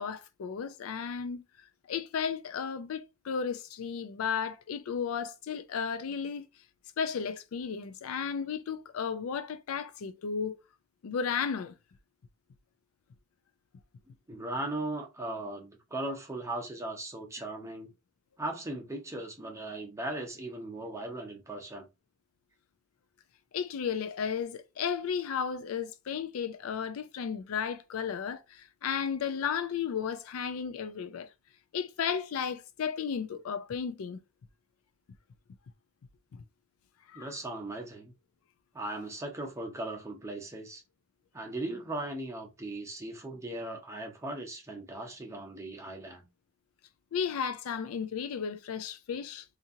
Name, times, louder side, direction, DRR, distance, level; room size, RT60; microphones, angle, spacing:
voice 1, 0.0-1.4 1.9-6.5 7.0-10.6 11.0-11.7 23.5-31.3 31.7-34.2 36.3-36.4 37.1-37.3 47.1-49.4, left 7 dB, 85° left, 0.4 m, -34 dB
voice 2, 14.3-17.9 18.4-21.9 37.1-38.1 38.7-40.8 41.3-46.2, right 2 dB, 15° right, 0.7 m, -38 dB
2.8 x 2.5 x 2.7 m
head